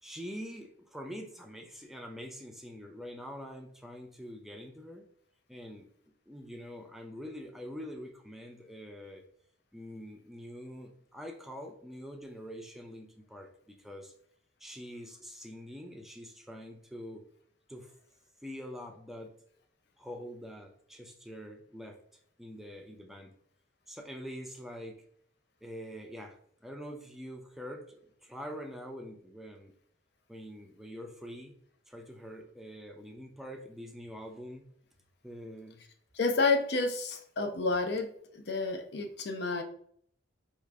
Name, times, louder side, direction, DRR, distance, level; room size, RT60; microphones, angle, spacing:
voice 1, 0.0-5.1 5.5-5.9 6.3-9.2 9.7-14.1 14.6-17.2 17.7-17.9 18.4-19.3 20.0-22.0 22.4-23.3 23.9-25.0 25.6-26.4 26.6-29.7 30.3-31.6 31.9-34.7 35.2-35.8, equal, ahead, 2 dB, 0.4 m, -45 dB
voice 2, 36.1-38.1 38.3-39.6, left 3 dB, 60° left, 5 dB, 0.6 m, -30 dB
4.7 x 2.5 x 3.3 m, 0.64 s
head